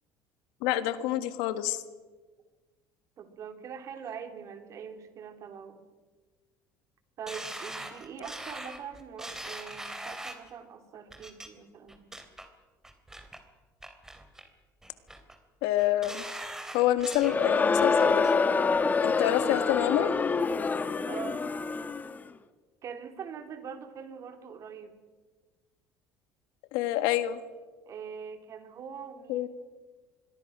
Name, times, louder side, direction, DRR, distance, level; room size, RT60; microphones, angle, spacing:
voice 1, 0.6-1.8 15.6-16.2 16.7-18.3 19.0-20.1 26.7-27.4 29.3-29.5, left 13 dB, 85° left, 11 dB, 1.7 m, -27 dB
voice 2, 3.2-5.8 7.2-12.1 21.0-21.5 22.8-24.9 27.8-29.5, right 7 dB, 50° right, 7 dB, 3.1 m, -43 dB
sound 1, 7.3-10.5 11.1-11.5 11.9-12.5 12.8-13.4 13.8-14.5 14.8-15.4 15.8-17.4 17.8-18.3 18.7-18.8, right 1 dB, 5° right, 3.1 m, -41 dB
Crowd, 17.1-22.2, left 4 dB, 25° left, 1.3 m, -26 dB
25.5 x 22.0 x 6.2 m, 1.4 s
cardioid pair, 110°, 7 cm